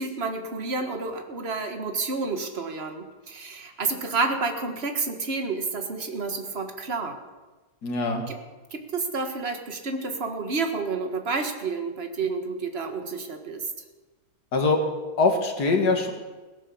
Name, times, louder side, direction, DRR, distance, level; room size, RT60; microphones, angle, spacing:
voice 1, 0.0-7.2 8.3-8.4 8.7-13.7, right 4 dB, 40° right, 5 dB, 1.7 m, -30 dB
voice 2, 7.8-8.2 14.5-14.8 15.2-16.1, left 3 dB, 80° left, 4 dB, 2.5 m, -22 dB
17.0 x 11.0 x 7.1 m, 1.2 s
omnidirectional pair, 1.7 m